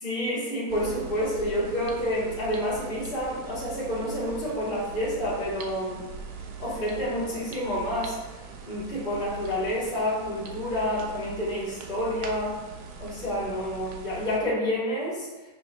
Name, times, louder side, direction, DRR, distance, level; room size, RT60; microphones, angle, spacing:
voice 1, 0.0-6.0 6.6-8.1 8.6-12.6 13.0-15.3, equal, 30° left, -10 dB, 3.2 m, -29 dB
sound 1, 0.7-14.4, right 5 dB, 90° right, 1.6 m, -41 dB
10.0 x 5.8 x 3.1 m, 1.1 s
omnidirectional pair, 1.8 m